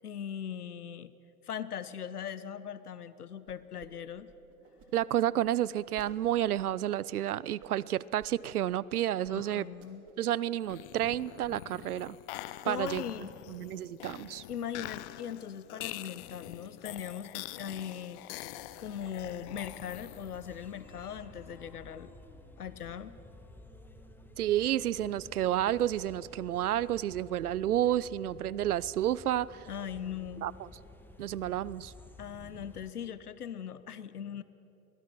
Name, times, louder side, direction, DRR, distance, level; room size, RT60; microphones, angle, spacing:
voice 1, 0.0-1.1 1.4-4.3 9.3-10.0 12.6-13.3 14.5-18.4 18.8-22.1 22.6-23.1 29.7-30.5 32.2-34.4, left 8 dB, 80° left, 15 dB, 1.1 m, -40 dB
sound 1, 3.5-3.9 4.1-6.1 6.6-7.0 7.6-8.3 8.7-8.8 9.2-9.3 9.6-10.3 10.5-11.1 11.4-11.8, right 7 dB, 30° right, 2.4 m, -56 dB
voice 2, 4.9-9.7 10.2-12.2 12.6-13.0 13.5-14.4 24.4-29.7 30.4-30.5 31.2-31.9, right 12 dB, 75° right, 21 dB, 0.7 m, -30 dB
sound 2, 10.6-20.5, left 17 dB, 40° left, 0.6 m, -45 dB
sound 3, 18.2-32.9, left 1 dB, 5° left, 1.4 m, -53 dB
24.0 x 18.5 x 6.2 m, 2.9 s
hypercardioid pair, 105°, 44 cm